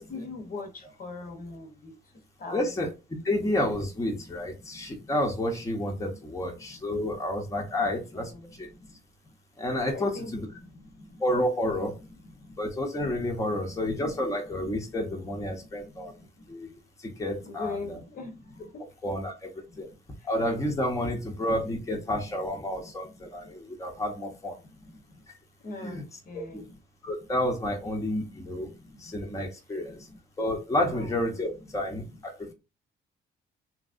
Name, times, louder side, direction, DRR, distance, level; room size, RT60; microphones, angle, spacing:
voice 1, 0.0-2.0 2.4-2.7 4.3-5.1 6.0-6.1 6.6-6.7 7.7-9.0 9.9-11.2 12.2-12.6 13.3-13.5 14.8-14.9 15.6-16.5 17.4-19.2 19.7-20.3 22.7-23.5 24.7-25.2 25.6-26.6 28.0-29.3 29.8-30.1 30.9-31.1 31.9-32.0 32.4-32.5, left 2 dB, 45° left, 0.9 m, -43 dB
voice 2, 2.5-2.9 3.2-8.3 8.6-8.7 9.6-10.5 11.2-12.0 12.6-16.1 16.5-16.7 17.0-18.0 19.0-19.5 19.8-19.9 20.2-24.6 25.8-26.0 26.3-26.6 27.0-28.7 29.0-30.1 30.4-32.5, left 1 dB, 15° left, 0.8 m, -30 dB
2.9 x 2.6 x 2.5 m
cardioid pair, 90°, 20 cm